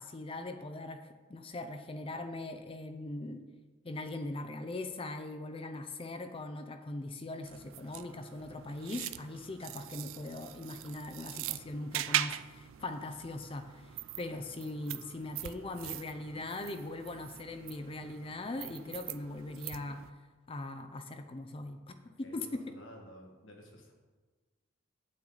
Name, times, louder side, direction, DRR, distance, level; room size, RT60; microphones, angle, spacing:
voice 1, 0.0-3.4 3.8-20.0 20.5-22.6, left 2 dB, 30° left, 7 dB, 0.5 m, -40 dB
sound 1, 7.4-20.1, right 13 dB, 85° right, 0.3 m, -41 dB
voice 2, 22.2-23.9, equal, 80° left, 1 dB, 1.8 m, -52 dB
8.6 x 8.0 x 4.0 m, 1.3 s
head